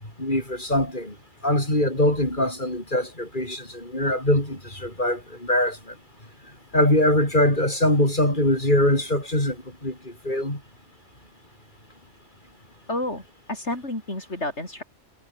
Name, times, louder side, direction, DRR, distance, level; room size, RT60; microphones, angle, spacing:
voice 1, 0.2-1.2 1.4-5.9 6.7-10.6, left 1 dB, 40° left, 7.5 m, -23 dB
voice 2, 12.9-13.2 13.5-14.8, left 1 dB, 60° left, 6.5 m, -30 dB
omnidirectional pair, 1.3 m